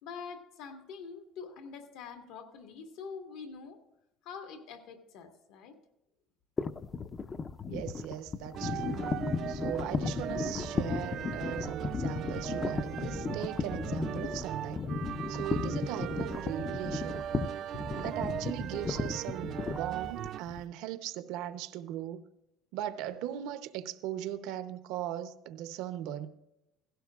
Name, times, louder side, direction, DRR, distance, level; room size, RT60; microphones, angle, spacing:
voice 1, 0.0-3.8 4.2-5.8, left 5 dB, 75° left, 1.8 m, -45 dB
sound 1, 6.6-20.6, left 5 dB, 25° left, 0.5 m, -35 dB
voice 2, 7.7-9.2 9.5-14.8 15.3-17.2 18.0-22.2 22.7-26.4, right 11 dB, 80° right, 0.8 m, -39 dB
sound 2, 8.5-20.4, right 11 dB, 50° right, 0.3 m, -39 dB
16.5 x 16.0 x 2.4 m
cardioid pair, 140°, 0 cm